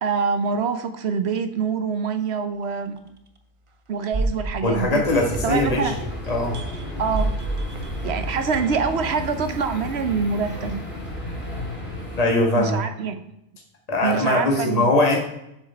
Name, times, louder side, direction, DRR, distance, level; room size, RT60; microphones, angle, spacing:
voice 1, 0.0-3.0 3.9-5.0 5.4-6.0 7.0-7.3 8.0-10.8 12.5-13.2 14.0-14.9, right 5 dB, 60° right, 9 dB, 0.9 m, -25 dB
sound 1, 3.0-3.1 4.1-5.7 6.5-6.8 7.1-9.3, right 2 dB, 40° right, 0.5 m, -29 dB
voice 2, 4.6-5.9 6.3-6.6 12.2-12.8 13.9-15.2, left 2 dB, 30° left, -1 dB, 1.7 m, -21 dB
sound 2, 5.1-12.2, left 1 dB, 10° left, 2.4 m, -32 dB
7.3 x 6.1 x 4.3 m, 0.81 s
omnidirectional pair, 1.4 m